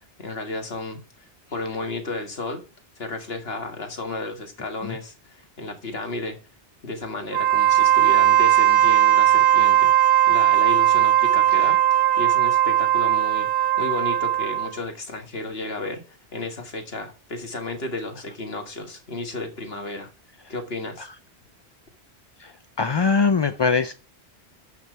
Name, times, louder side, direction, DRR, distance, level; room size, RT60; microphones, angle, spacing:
voice 1, 0.2-1.0 1.5-2.6 3.0-6.4 6.8-9.9 10.3-20.1 20.5-21.1, left 2 dB, 65° left, 2.1 m, -33 dB
Wind instrument woodwind instrument, 7.3-14.8, right 12 dB, 70° right, 1.0 m, -18 dB
voice 2, 22.8-23.9, left 4 dB, 40° left, 0.3 m, -22 dB
11.5 x 6.0 x 4.6 m
omnidirectional pair, 1.1 m